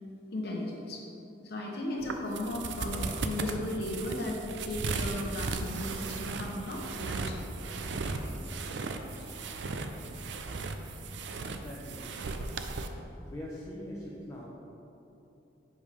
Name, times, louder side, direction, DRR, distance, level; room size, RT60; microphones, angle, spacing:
voice 1, 0.3-1.0 1.4-7.5 9.1-9.6, left 1 dB, 55° left, -2 dB, 0.8 m, -36 dB
sound 1, 2.0-12.9, right 3 dB, 65° right, 0.5 m, -36 dB
voice 2, 11.4-12.1 13.2-14.5, left 1 dB, 15° left, -6 dB, 0.7 m, -42 dB
10.5 x 5.3 x 3.3 m, 2.9 s
head